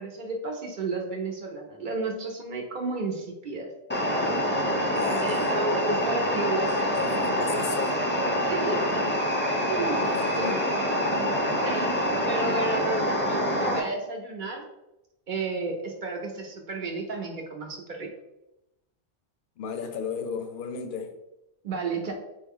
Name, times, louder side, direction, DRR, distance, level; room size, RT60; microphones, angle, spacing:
voice 1, 0.0-3.7 5.2-7.4 8.4-9.1 9.6-10.1 10.4-11.3 11.6-14.6 15.3-18.1 21.6-22.1, right 3 dB, 50° right, 0.8 m, -32 dB
sound 1, 3.9-13.8, equal, 20° left, 0.3 m, -26 dB
voice 2, 4.9-5.5 6.6-8.1 10.1-10.5 19.6-21.1, left 6 dB, 60° left, 0.6 m, -35 dB
4.5 x 2.2 x 3.5 m
omnidirectional pair, 1.2 m